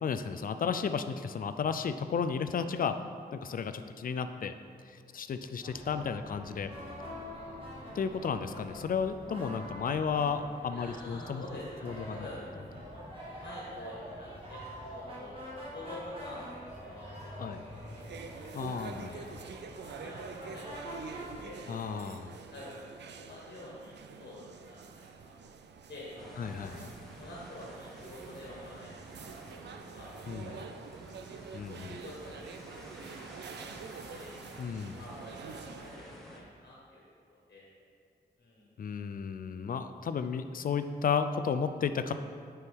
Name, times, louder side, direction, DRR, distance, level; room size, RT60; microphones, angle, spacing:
voice 1, 0.0-3.0 3.3-4.5 4.9-6.7 7.9-11.4 11.8-12.3 17.4-17.6 18.5-19.2 21.7-22.3 26.4-26.9 30.3-30.5 31.5-32.0 34.6-35.0 38.8-42.1, left 6 dB, 55° left, 10 dB, 0.4 m, -33 dB
sound 1, 5.6-21.4, equal, 30° right, 1.7 m, -45 dB
voice 2, 10.7-12.7 13.4-15.4 15.7-17.9 18.1-18.3 18.8-19.2 19.9-21.7 22.3-25.5 25.9-29.3 29.9-30.7 31.2-31.3 31.8-34.4 35.0-37.0 37.3-37.7 38.4-38.7, left 1 dB, 75° left, -5 dB, 1.5 m, -48 dB
sound 2, 17.7-36.1, right 5 dB, 80° right, 0.4 m, -47 dB
sound 3, 26.2-36.4, equal, ahead, 0.9 m, -51 dB
9.5 x 4.6 x 3.6 m, 2.2 s
wide cardioid pair, 135°, 17 cm